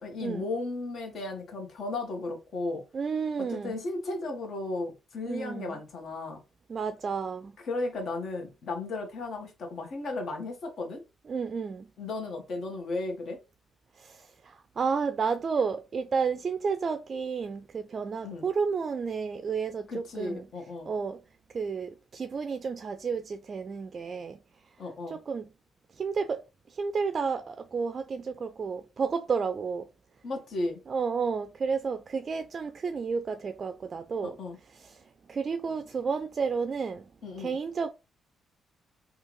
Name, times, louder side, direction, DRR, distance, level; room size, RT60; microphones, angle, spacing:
voice 1, 0.0-2.8 3.4-6.4 7.6-11.0 12.0-13.4 18.2-18.5 19.9-20.9 24.8-25.2 30.2-30.8 34.2-34.6 37.2-37.6, left 2 dB, 60° left, 1.3 m, -35 dB
voice 2, 2.9-3.8 5.3-5.8 6.7-7.5 11.3-11.9 14.0-20.4 20.9-21.2 21.5-24.4 25.1-25.4 26.0-26.4 26.7-29.8 30.9-34.4 34.8-34.9 35.3-37.1 37.4-37.9, right 5 dB, 45° right, 0.3 m, -31 dB
3.5 x 2.4 x 3.1 m
cardioid pair, 90°, 0 cm